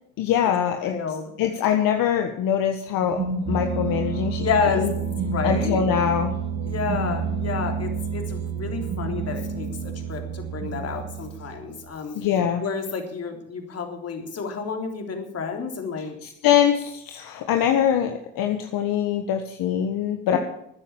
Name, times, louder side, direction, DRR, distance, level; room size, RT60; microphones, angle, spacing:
voice 1, 0.2-1.0 1.4-3.2 3.5-4.5 4.7-4.9 5.4-6.3 12.1-12.6 16.2-20.4, left 9 dB, 65° left, 5 dB, 1.5 m, -23 dB
voice 2, 0.8-1.2 4.4-4.9 5.3-5.8 6.7-12.2 12.6-16.2 20.3-20.4, left 5 dB, 40° left, 4 dB, 3.6 m, -30 dB
sound 1, 3.0-11.8, right 5 dB, 45° right, 2.9 m, -29 dB
13.5 x 10.0 x 7.2 m, 0.76 s
supercardioid pair, 75°, 37 cm